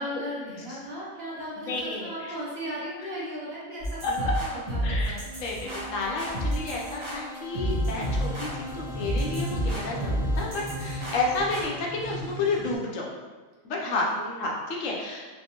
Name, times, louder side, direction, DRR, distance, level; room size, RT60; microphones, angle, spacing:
voice 1, 0.0-5.2 13.8-14.6, equal, 55° right, -7 dB, 0.9 m, -37 dB
voice 2, 1.6-2.3 4.0-4.1 4.8-13.1 13.6-14.1 14.4-15.3, left 3 dB, 70° left, -1 dB, 0.9 m, -31 dB
sound 1, 3.8-11.7, equal, 30° right, 0.7 m, -30 dB
sound 2, 5.6-11.6, left 1 dB, 80° right, 1.3 m, -43 dB
sound 3, 7.7-12.8, right 1 dB, 30° left, 1.5 m, -37 dB
3.4 x 2.6 x 2.8 m, 1.4 s
omnidirectional pair, 1.4 m